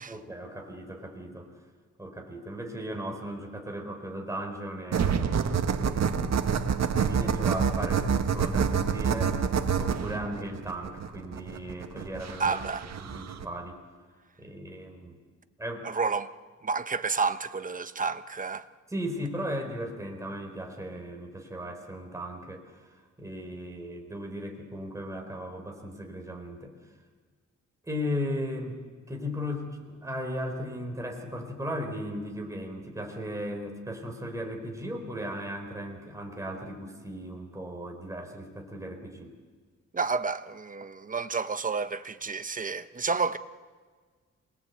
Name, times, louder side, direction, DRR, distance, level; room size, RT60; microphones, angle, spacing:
voice 1, 0.1-1.5 2.0-5.3 5.7-6.6 6.9-12.6 12.9-13.8 14.4-15.2 15.6-15.9 18.9-26.8 27.8-39.3, equal, 10° right, 4.2 m, -37 dB
sound 1, 4.9-13.4, right 6 dB, 65° right, 1.6 m, -27 dB
voice 2, 12.4-12.9 15.8-16.3 16.6-18.7 39.9-43.4, right 4 dB, 30° right, 1.0 m, -30 dB
27.0 x 20.5 x 8.1 m
cardioid pair, 110°, 29 cm